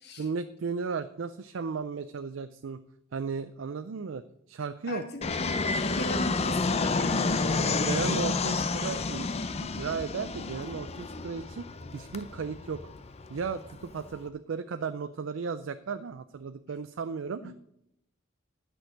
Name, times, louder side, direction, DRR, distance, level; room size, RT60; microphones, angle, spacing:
voice 1, 0.2-2.8 3.1-4.2 4.5-5.0 7.8-9.3 9.6-11.7 11.9-12.8 13.3-17.5, right 5 dB, 80° right, 11 dB, 0.4 m, -35 dB
voice 2, 4.9-5.2 5.7-8.7 17.4-17.5, left 1 dB, 60° left, 4 dB, 1.7 m, -37 dB
Fixed-wing aircraft airplane, 5.2-14.2, left 3 dB, 35° left, 0.6 m, -30 dB
10.5 x 6.3 x 6.3 m, 0.78 s
head